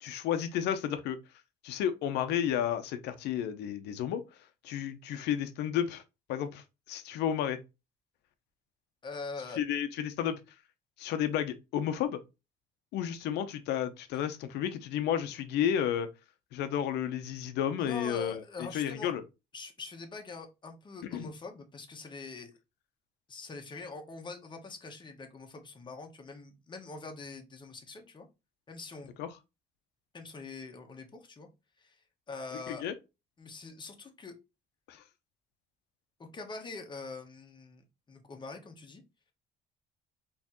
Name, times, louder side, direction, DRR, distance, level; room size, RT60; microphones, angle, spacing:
voice 1, 0.0-1.2 1.6-4.2 4.6-6.0 6.3-7.6 9.6-10.4 11.0-12.2 12.9-16.1 16.5-18.4 18.7-19.2 21.1-21.3 29.2-29.3 32.7-32.9 34.9-35.0, left 9 dB, 85° left, 0.7 m, -32 dB
voice 2, 9.0-9.6 17.8-19.1 19.5-22.5 23.3-28.3 28.7-29.2 30.1-31.5 31.8-31.9 32.3-32.8 33.4-34.4 36.2-39.0, left 3 dB, 25° left, 1.1 m, -44 dB
4.3 x 3.2 x 3.0 m
cardioid pair, 110°, 17 cm